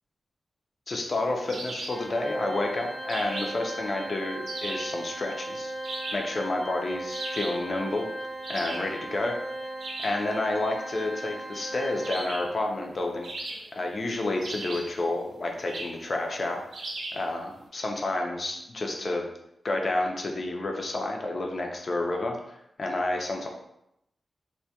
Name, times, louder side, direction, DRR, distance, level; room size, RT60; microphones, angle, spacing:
voice 1, 0.9-5.7 6.1-8.1 8.5-9.4 10.0-13.3 13.7-16.6 17.1-19.2 19.6-23.5, left 2 dB, 45° left, 2 dB, 0.4 m, -30 dB
sound 1, 1.5-2.1 3.1-3.7 4.5-5.0 5.8-6.4 7.1-7.7 8.4-8.9 9.8-10.3 12.0-12.6 13.2-13.9 14.4-15.0 15.7-16.0 16.7-17.3, right 2 dB, 80° right, 0.4 m, -37 dB
Organ, 1.9-12.6, right 1 dB, ahead, 0.7 m, -37 dB
2.2 x 2.1 x 2.7 m, 0.80 s
wide cardioid pair, 110°, 0 cm